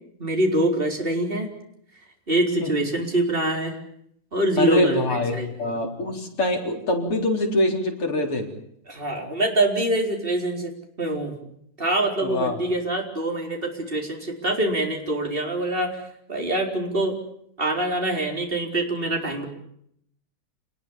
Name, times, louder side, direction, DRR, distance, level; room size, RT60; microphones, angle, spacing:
voice 1, 0.2-1.5 2.3-3.8 4.3-5.5 8.9-10.7 11.0-11.4 11.8-16.0 16.3-17.2 17.6-19.5, right 1 dB, 25° right, 2 dB, 4.5 m, -24 dB
voice 2, 4.6-8.5 12.2-12.6, left 1 dB, 80° left, 2 dB, 5.1 m, -24 dB
27.5 x 20.5 x 7.3 m, 0.71 s
omnidirectional pair, 2.4 m